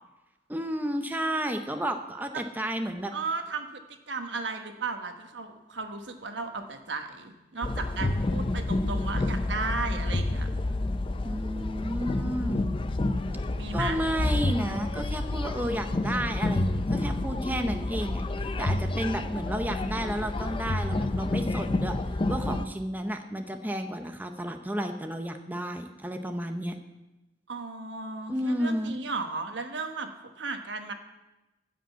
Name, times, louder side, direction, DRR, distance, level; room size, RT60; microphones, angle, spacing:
voice 1, 0.5-3.1 11.2-12.7 13.7-22.0 22.3-26.8 28.3-28.9, equal, 10° right, 5 dB, 0.7 m, -32 dB
voice 2, 3.1-3.8 4.1-10.5 13.6-14.0 27.5-30.9, right 4 dB, 75° right, 6 dB, 1.2 m, -35 dB
sound 1, 7.6-22.7, left 2 dB, 30° left, 0.5 m, -29 dB
15.0 x 5.2 x 8.0 m, 1.0 s
head